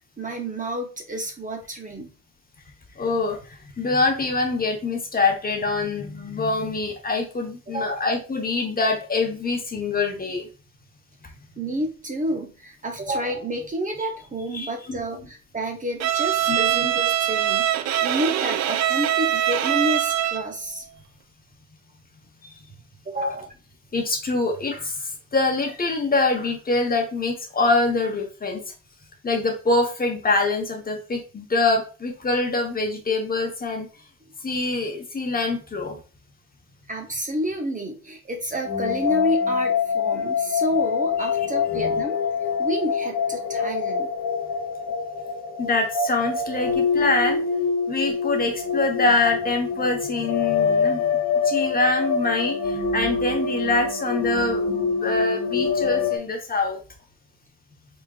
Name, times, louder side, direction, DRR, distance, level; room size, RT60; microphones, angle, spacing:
voice 1, 0.2-2.1 7.7-8.0 11.6-20.9 23.0-23.5 36.9-42.2 42.6-44.1, right 1 dB, 25° right, 3 dB, 0.8 m, -29 dB
voice 2, 3.0-10.5 14.5-15.3 16.5-16.6 22.4-22.7 23.2-23.3 23.9-28.6 29.2-33.9 34.4-36.0 41.7-42.0 45.6-47.4 47.9-51.1 51.4-56.8, left 3 dB, 30° left, 2 dB, 1.1 m, -25 dB
Bowed string instrument, 16.0-20.6, right 11 dB, 60° right, 0.5 m, -23 dB
sound 1, 38.6-56.2, left 5 dB, 80° left, 1.3 m, -25 dB
4.3 x 3.7 x 2.4 m, 0.35 s
cardioid pair, 90°, 30 cm